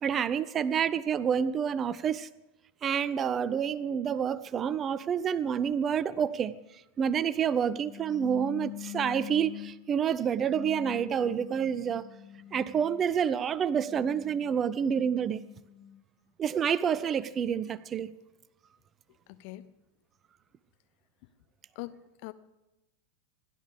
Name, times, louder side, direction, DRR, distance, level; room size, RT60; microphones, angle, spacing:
voice 1, 0.0-2.3 2.8-6.5 7.0-12.1 12.5-15.4 16.4-18.1, right 8 dB, 25° right, 0.5 m, -28 dB
sound 1, 7.8-9.8 10.4-13.1 13.7-16.0, left 13 dB, 5° left, 7.7 m, -44 dB
voice 2, 19.3-19.7 21.7-22.3, left 18 dB, 45° left, 0.7 m, -42 dB
27.5 x 12.0 x 3.5 m
figure-of-eight pair, 90°, 0 cm